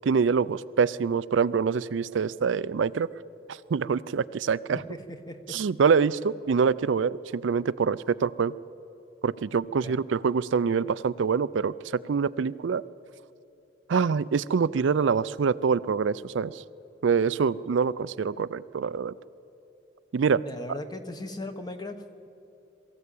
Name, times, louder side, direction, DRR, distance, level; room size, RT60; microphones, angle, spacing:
voice 1, 0.0-3.1 3.5-4.8 5.5-8.5 9.2-11.7 12.1-12.8 13.9-16.6 17.0-19.1 20.1-20.4, right 6 dB, 75° right, 16 dB, 0.4 m, -25 dB
voice 2, 4.7-5.4 9.8-10.0 20.4-22.3, left 1 dB, 20° left, 8 dB, 1.1 m, -38 dB
22.5 x 14.5 x 8.4 m, 3.0 s
head